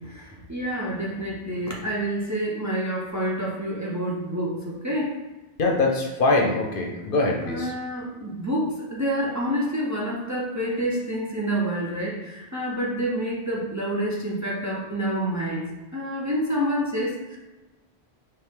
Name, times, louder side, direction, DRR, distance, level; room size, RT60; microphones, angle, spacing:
voice 1, 0.1-5.2 7.4-17.4, equal, 20° right, -4 dB, 0.6 m, -28 dB
voice 2, 5.6-7.7, left 2 dB, 60° left, 0 dB, 0.8 m, -23 dB
4.5 x 3.2 x 3.6 m, 1.1 s
omnidirectional pair, 1.1 m